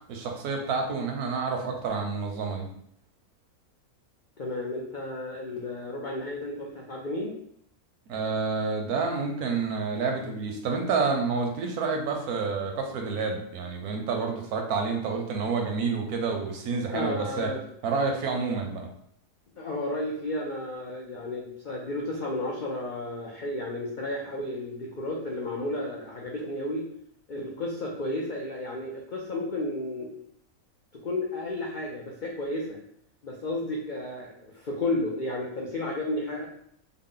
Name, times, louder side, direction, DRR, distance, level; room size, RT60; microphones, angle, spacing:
voice 1, 0.1-2.7 8.1-17.5 17.8-18.9, right 4 dB, 80° right, 2 dB, 1.2 m, -29 dB
voice 2, 4.4-7.4 16.9-17.6 19.6-26.9 27.3-30.1 30.9-32.8 33.2-36.5, left 1 dB, 80° left, -2 dB, 0.4 m, -32 dB
3.9 x 2.1 x 3.8 m, 0.68 s
omnidirectional pair, 1.6 m